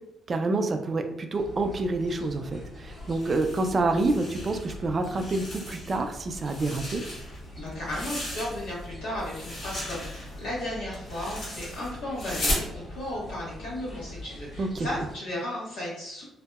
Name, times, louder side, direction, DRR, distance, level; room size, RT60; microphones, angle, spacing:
voice 1, 0.3-7.0 14.6-14.9, right 2 dB, 40° right, 6 dB, 0.3 m, -28 dB
sound 1, 1.4-15.2, left 1 dB, 20° left, 1.2 m, -43 dB
sound 2, 3.0-4.7 5.0-6.0 6.4-8.9 9.2-12.7, left 1 dB, 50° left, 1.2 m, -36 dB
voice 2, 7.5-16.2, left 1 dB, 85° left, -6 dB, 1.3 m, -35 dB
2.7 x 2.1 x 2.2 m, 0.81 s
cardioid pair, 90°, 0 cm